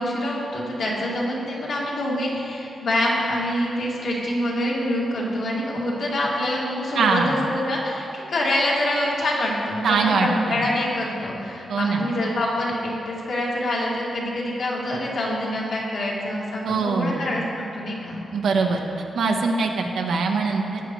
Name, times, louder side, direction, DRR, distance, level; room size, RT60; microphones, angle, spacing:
voice 1, 0.0-18.2, left 1 dB, 65° left, -5 dB, 2.2 m, -26 dB
voice 2, 7.0-7.4 9.8-10.6 11.7-12.1 16.6-17.3 18.3-18.8 19.1-20.8, right 4 dB, 85° right, 2 dB, 0.9 m, -22 dB
14.5 x 9.3 x 3.1 m, 2.8 s
wide cardioid pair, 140°, 0 cm